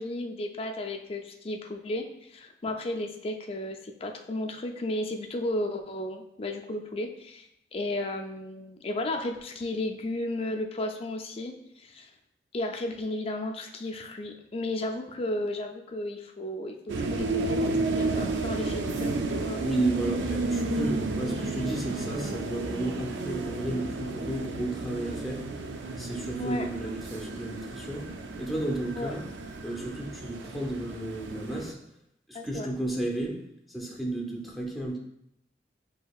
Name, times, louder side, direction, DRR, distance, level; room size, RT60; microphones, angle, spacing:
voice 1, 0.0-11.6 11.8-12.1 12.5-19.7 26.4-26.7 29.0-29.1 32.3-32.7, left 1 dB, 35° left, 3 dB, 0.4 m, -34 dB
sound 1, 16.9-31.7, right 2 dB, 85° right, 0.4 m, -32 dB
voice 2, 19.6-25.4 26.0-28.1 28.4-29.2 29.6-31.8 32.3-33.4 33.7-35.0, right 1 dB, ahead, -2 dB, 0.7 m, -32 dB
6.5 x 2.8 x 2.3 m, 0.78 s
head